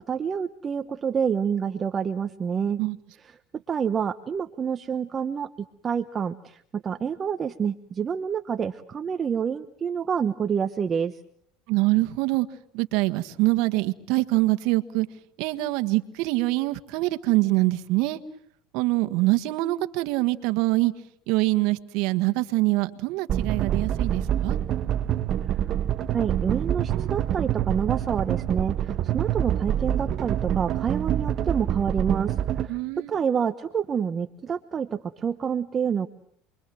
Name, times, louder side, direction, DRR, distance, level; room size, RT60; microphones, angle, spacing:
voice 1, 0.0-2.8 3.7-5.5 5.8-11.2 25.5-25.7 26.1-32.8 33.1-36.1, right 7 dB, 30° right, 9 dB, 1.0 m, -28 dB
voice 2, 11.7-12.5 12.7-15.1 15.4-18.2 18.7-20.9 21.3-24.6 32.7-33.2, right 20 dB, 65° right, 9 dB, 1.6 m, -24 dB
sound 1, 23.3-32.7, right 10 dB, 45° right, 1.2 m, -26 dB
28.5 x 23.0 x 7.7 m, 0.67 s
supercardioid pair, 125°, 0 cm